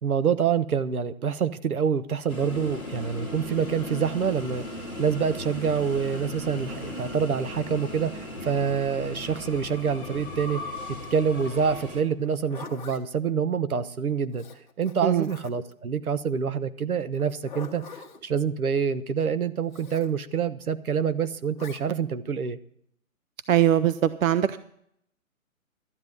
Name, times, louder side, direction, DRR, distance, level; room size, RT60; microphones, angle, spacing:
voice 1, 0.0-4.6 5.0-10.6 10.9-14.5 14.8-22.6, right 6 dB, 85° right, 13 dB, 1.1 m, -26 dB
sound 1, 2.3-12.0, left 1 dB, 10° right, 1.0 m, -37 dB
Zipper (clothing), 12.2-13.0 14.3-15.7 17.1-18.2 19.7-20.1 21.6-21.8, left 5 dB, 35° left, 1.3 m, -43 dB
voice 2, 23.5-24.6, right 10 dB, 70° right, 14 dB, 0.7 m, -21 dB
13.0 x 10.0 x 5.2 m, 0.70 s
hypercardioid pair, 160°, 42 cm